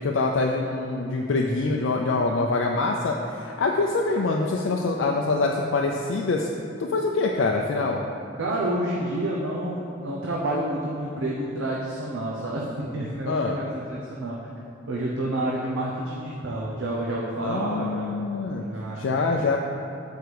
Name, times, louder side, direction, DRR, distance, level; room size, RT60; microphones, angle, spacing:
voice 1, 0.0-6.5 6.8-8.0 13.3-13.6 17.4-18.6 19.0-19.6, left 3 dB, 70° left, 0 dB, 0.4 m, -25 dB
voice 2, 8.4-14.4 14.9-18.3 18.5-19.1, right 1 dB, 85° right, -4 dB, 0.7 m, -29 dB
6.8 x 4.6 x 4.7 m, 2.7 s
head